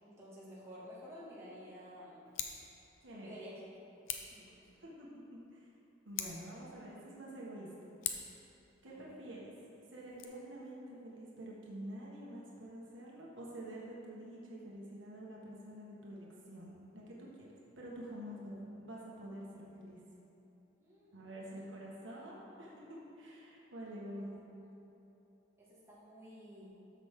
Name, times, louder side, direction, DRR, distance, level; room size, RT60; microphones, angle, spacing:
voice 1, 0.0-2.2 3.1-3.6 4.3-4.7 8.8-9.2 20.8-21.7 24.0-24.3 25.6-26.7, equal, 15° right, -9 dB, 2.1 m, -52 dB
Scissors, 2.3-2.7 4.0-4.4 6.1-6.6 8.0-8.4 10.0-10.2, left 8 dB, 85° left, 0.7 m, -40 dB
voice 2, 4.8-5.7 6.0-7.7 8.8-9.5 9.9-17.5 17.8-20.0 21.1-24.7, right 1 dB, 70° right, -5 dB, 1.6 m, -48 dB
13.0 x 6.3 x 3.7 m, 2.9 s
head